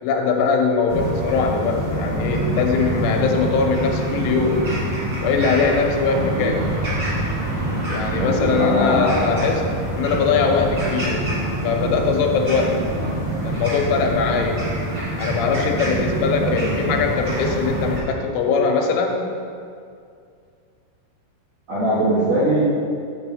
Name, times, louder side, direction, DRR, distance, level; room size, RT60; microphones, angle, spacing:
voice 1, 0.0-4.7 5.2-6.7 7.9-9.6 9.9-11.3 11.6-12.8 13.4-14.7 15.2-19.2, left 5 dB, 85° left, 2 dB, 3.2 m, -21 dB
sound 1, 0.9-18.0, right 1 dB, 45° right, 1.4 m, -25 dB
voice 2, 6.1-6.5 8.1-9.4 13.0-13.1 16.4-16.5 21.7-22.6, right 1 dB, 85° right, -9 dB, 1.5 m, -22 dB
6.2 x 6.1 x 6.9 m, 2.3 s
omnidirectional pair, 5.6 m